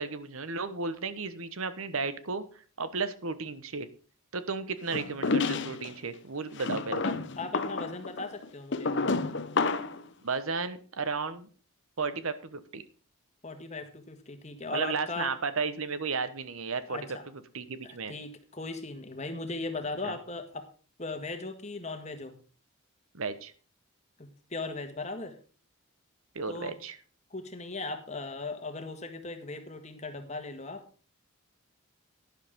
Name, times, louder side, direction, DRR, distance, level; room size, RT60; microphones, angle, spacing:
voice 1, 0.0-2.4 2.8-3.9 4.3-7.1 10.2-11.5 12.0-12.8 14.7-17.2 17.5-18.1 20.0-20.2 23.1-23.5 26.3-27.0, right 4 dB, 75° right, 13 dB, 1.1 m, -34 dB
sound 1, 4.9-5.9 6.6-10.0, left 3 dB, 55° left, 0.8 m, -30 dB
voice 2, 7.0-8.9 13.4-15.3 16.9-17.2 17.8-20.6 21.0-22.4 24.2-25.3 26.5-26.8 27.3-30.8, left 3 dB, 30° left, 6 dB, 1.6 m, -38 dB
12.0 x 10.5 x 3.7 m, 0.38 s
head